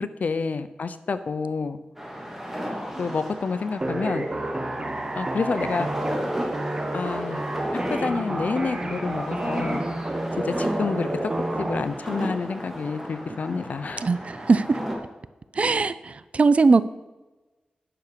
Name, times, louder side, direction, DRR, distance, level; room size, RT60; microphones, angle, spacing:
voice 1, 0.0-1.8 3.0-4.3 5.1-5.9 6.9-7.4 7.7-9.8 10.4-11.3 11.6-14.1, left 4 dB, 65° left, 12 dB, 0.7 m, -28 dB
sound 1, 2.0-15.0, equal, 10° right, 2.6 m, -34 dB
sound 2, 3.8-11.8, right 1 dB, 30° right, 1.4 m, -30 dB
voice 2, 14.0-14.8 15.6-16.8, right 4 dB, 50° right, 15 dB, 0.5 m, -20 dB
10.0 x 6.0 x 6.8 m, 1.1 s
wide cardioid pair, 75°, 3 cm